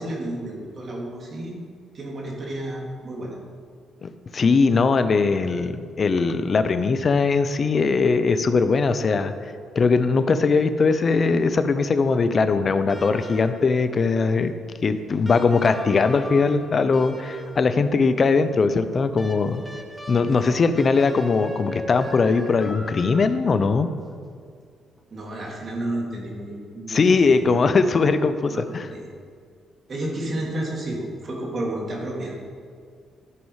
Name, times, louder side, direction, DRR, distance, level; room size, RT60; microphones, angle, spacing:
voice 1, 0.0-1.6 1.9-3.4 20.3-20.7 25.1-27.4 28.5-29.0 29.9-32.3, right 1 dB, 45° right, -2 dB, 2.6 m, -31 dB
voice 2, 4.0-9.3 9.8-14.5 14.8-19.6 20.1-23.9 26.9-28.9, left 4 dB, 40° left, 10 dB, 0.6 m, -20 dB
sound 1, 12.9-13.8 15.2-17.8 19.2-23.6 25.0-25.1, left 1 dB, 5° left, 1.3 m, -39 dB
12.5 x 5.4 x 4.8 m, 2.1 s
cardioid pair, 90°, 0 cm